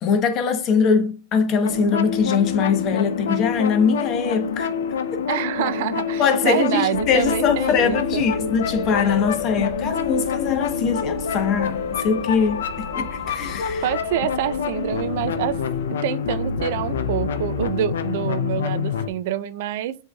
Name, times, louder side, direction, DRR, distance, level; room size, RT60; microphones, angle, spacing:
voice 1, 0.0-4.7 5.1-5.2 6.2-13.9, left 6 dB, 40° left, 0.9 m, -22 dB
sound 1, 1.6-19.1, left 6 dB, 85° left, 0.5 m, -27 dB
voice 2, 5.3-8.3 13.8-15.6 16.0-20.0, right 12 dB, 60° right, 0.4 m, -26 dB
sound 2, 6.9-15.9, right 3 dB, 15° right, 1.1 m, -39 dB
7.5 x 2.8 x 2.3 m
hypercardioid pair, 130°, 0 cm